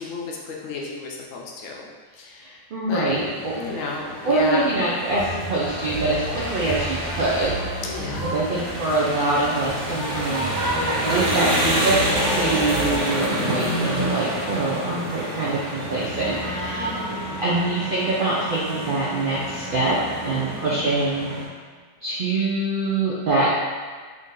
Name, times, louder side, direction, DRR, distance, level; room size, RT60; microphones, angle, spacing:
voice 1, 0.0-1.9 2.1-2.6 2.8-3.2 3.5-4.7 7.8-8.3 16.7-17.3 20.3-20.8, left 3 dB, 70° left, -2 dB, 0.9 m, -32 dB
voice 2, 2.7-3.5 4.2-7.6 8.3-12.0 12.3-16.9 17.4-20.0 20.2-21.3 22.0-23.6, right 2 dB, 65° right, -7 dB, 0.5 m, -24 dB
sound 1, 3.1-21.4, equal, 45° right, 1.1 m, -28 dB
sound 2, 5.1-13.0, right 3 dB, 10° left, 0.8 m, -35 dB
Wind instrument woodwind instrument, 16.1-21.0, right 2 dB, 90° left, 1.4 m, -36 dB
3.7 x 2.7 x 3.7 m, 1.5 s
omnidirectional pair, 1.5 m